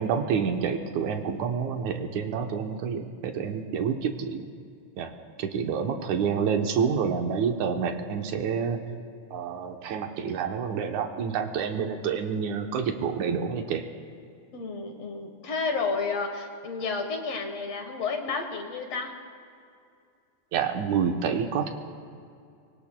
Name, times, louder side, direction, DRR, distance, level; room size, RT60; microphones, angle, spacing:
voice 1, 0.0-4.5 5.0-5.1 5.4-8.8 9.3-13.8 20.5-21.7, right 6 dB, 75° right, 5 dB, 2.2 m, -28 dB
voice 2, 14.5-19.1, left 4 dB, 60° left, 4 dB, 2.1 m, -31 dB
24.5 x 24.0 x 2.2 m, 2.4 s
omnidirectional pair, 3.5 m